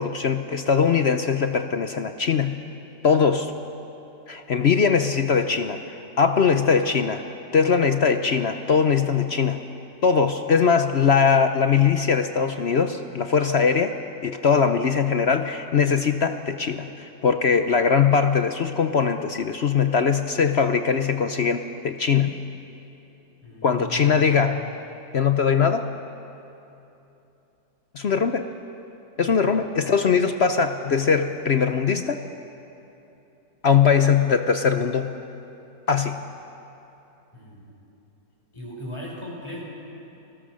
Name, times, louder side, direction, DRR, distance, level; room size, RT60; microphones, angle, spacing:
voice 1, 0.0-2.6 3.0-3.5 4.3-7.2 7.5-9.6 10.0-13.9 14.2-22.3 23.6-24.7 25.1-25.9 27.9-28.5 29.2-32.3 33.6-35.1 35.9-36.2, left 6 dB, 55° left, 8 dB, 0.7 m, -21 dB
voice 2, 23.4-24.2 29.4-29.6 37.3-37.7 38.5-39.6, left 2 dB, 15° left, -4 dB, 5.8 m, -37 dB
29.5 x 19.5 x 6.4 m, 2.9 s
omnidirectional pair, 1.8 m